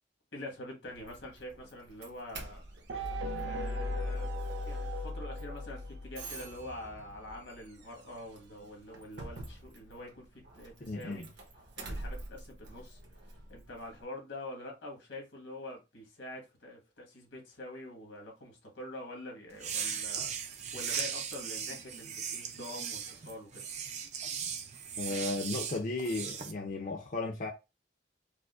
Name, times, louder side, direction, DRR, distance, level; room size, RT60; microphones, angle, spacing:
voice 1, 0.3-2.6 3.4-4.3 4.6-11.3 11.8-13.0 13.5-23.6, left 1 dB, 75° left, 1.5 m, -45 dB
Doorbell, 0.9-14.0, right 2 dB, 65° right, 1.1 m, -49 dB
sound 1, 2.9-6.6, left 1 dB, 85° right, 0.5 m, -37 dB
voice 2, 10.9-11.3 25.0-27.5, left 3 dB, 45° left, 0.6 m, -35 dB
sound 2, 19.5-26.5, right 7 dB, 35° right, 0.5 m, -38 dB
4.8 x 2.1 x 2.4 m
head